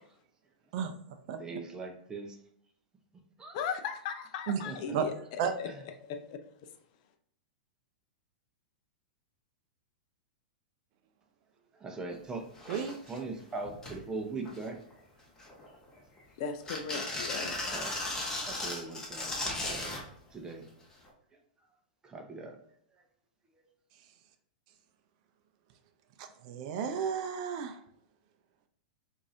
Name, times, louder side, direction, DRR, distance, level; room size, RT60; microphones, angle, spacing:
voice 1, 1.4-2.4 3.4-3.6 4.6-5.0 5.7-5.8 11.7-12.8 13.1-14.8 17.4-18.0 18.4-19.9 20.3-20.7 21.3-21.4 22.0-22.6 22.9-23.0 23.5-23.7, right 3 dB, 15° right, 3 dB, 0.7 m, -41 dB
voice 2, 3.5-5.1 5.6-5.7 6.1-6.4 16.4-17.7, left 6 dB, 55° left, 7 dB, 0.5 m, -37 dB
sound 1, 12.2-12.3 12.5-13.2 13.6-14.0 14.4-14.9 15.4-16.2 16.6-20.0 21.1-21.2, left 2 dB, 15° left, 0.9 m, -36 dB
voice 3, 26.2-27.8, right 7 dB, 50° right, 8 dB, 0.5 m, -32 dB
4.6 x 2.6 x 2.7 m, 0.67 s
hypercardioid pair, 125°, 5 cm